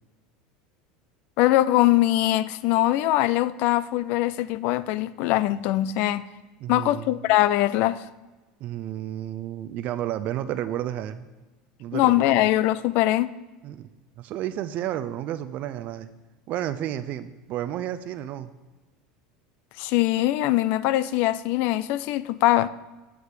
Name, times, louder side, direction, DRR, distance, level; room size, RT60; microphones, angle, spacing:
voice 1, 1.4-6.2 6.7-8.0 11.9-13.3 19.8-22.7, left 15 dB, 65° left, 0.3 m, -22 dB
voice 2, 6.6-7.2 8.6-11.3 11.8-12.5 13.6-13.9 14.2-16.1 16.5-18.5, right 12 dB, 55° right, 0.4 m, -31 dB
8.6 x 5.0 x 4.7 m
supercardioid pair, 100°, 3 cm